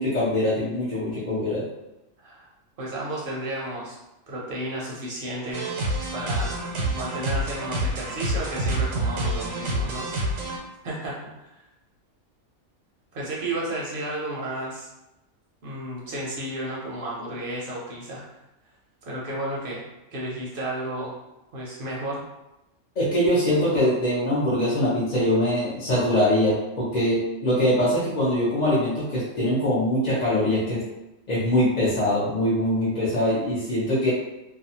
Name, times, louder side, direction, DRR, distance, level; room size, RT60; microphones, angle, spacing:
voice 1, 0.0-1.6 23.0-30.8 31.3-34.1, left 1 dB, 45° left, -8 dB, 0.6 m, -23 dB
voice 2, 2.8-4.0 4.3-5.7 6.1-6.6 6.9-10.4 10.8-11.3 13.1-14.9 15.6-18.2 19.0-19.8 20.1-21.1 21.5-22.2, right 1 dB, 55° right, -5 dB, 0.7 m, -32 dB
sound 1, 5.5-10.6, right 1 dB, 85° right, 1.0 m, -27 dB
2.5 x 2.2 x 2.7 m, 0.95 s
omnidirectional pair, 1.3 m